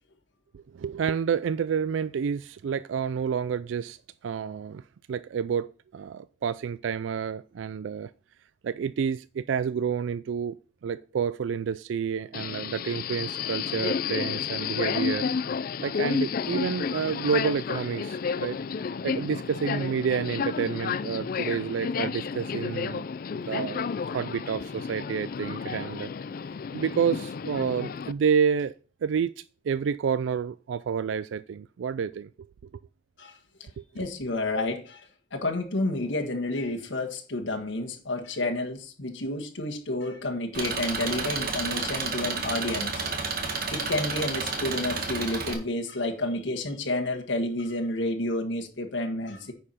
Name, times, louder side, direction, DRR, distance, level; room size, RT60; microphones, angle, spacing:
voice 1, 0.5-4.0 4.2-4.8 5.1-8.1 8.6-10.6 10.8-15.3 15.8-18.6 19.0-23.1 23.5-26.1 26.7-28.7 29.0-32.3 33.8-34.0, right 7 dB, 80° right, 0.3 m, -29 dB
Subway metro underground, 12.3-28.1, left 6 dB, 50° left, 0.3 m, -31 dB
voice 2, 33.9-35.0 35.3-43.0 43.7-49.5, left 2 dB, 75° left, 1.6 m, -30 dB
Engine, 40.5-45.5, right 4 dB, 50° right, 1.6 m, -31 dB
9.7 x 4.6 x 5.6 m
head